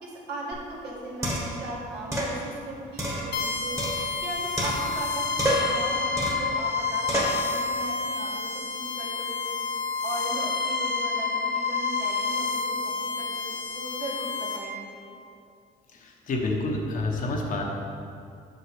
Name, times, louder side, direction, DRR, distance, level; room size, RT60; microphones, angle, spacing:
voice 1, 0.0-3.8 4.2-8.4 8.7-9.6 10.0-15.1, right 1 dB, 75° right, -4 dB, 1.7 m, -38 dB
sound 1, 0.5-0.6 1.2-1.6 2.1-2.3 3.0-4.3 4.6-5.1 5.4-5.8 6.2-6.5 7.1-7.4, right 1 dB, 15° right, 1.4 m, -28 dB
sound 2, 3.3-14.6, left 4 dB, 80° left, 1.0 m, -29 dB
voice 2, 15.9-17.6, left 2 dB, 50° left, 0 dB, 1.1 m, -28 dB
7.6 x 5.7 x 3.4 m, 2.4 s
cardioid pair, 110°, 17 cm